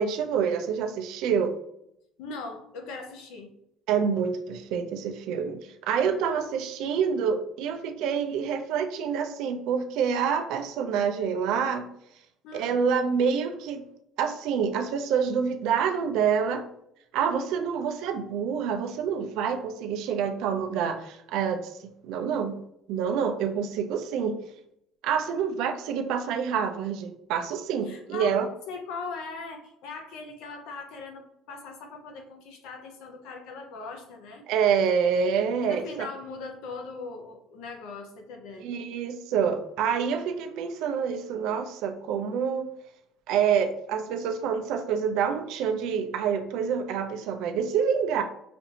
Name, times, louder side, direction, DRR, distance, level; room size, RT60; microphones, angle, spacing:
voice 1, 0.0-1.6 3.9-11.9 12.5-13.8 14.2-16.7 17.1-22.6 22.9-24.4 25.0-28.5 34.5-36.1 38.6-42.7 43.3-48.2, right 7 dB, 65° right, 7 dB, 0.5 m, -27 dB
voice 2, 2.2-3.5 12.4-12.8 27.9-28.3 28.7-34.4 35.6-38.7, left 4 dB, 70° left, 4 dB, 0.7 m, -40 dB
5.1 x 2.5 x 2.8 m, 0.76 s
cardioid pair, 175°, 0 cm